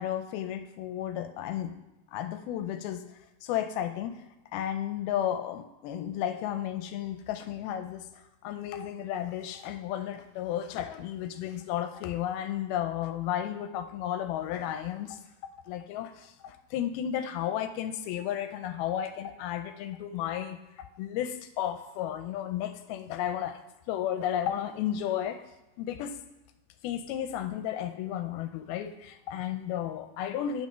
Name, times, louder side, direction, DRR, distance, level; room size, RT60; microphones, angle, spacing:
voice 1, 0.0-1.8 2.1-3.1 3.4-4.2 4.5-8.1 8.4-15.2 15.7-23.6 23.9-25.4 25.8-26.2 26.8-30.7, left 10 dB, 85° left, 9 dB, 2.4 m, -33 dB
8.3 x 6.1 x 5.6 m, 1.0 s
omnidirectional pair, 4.4 m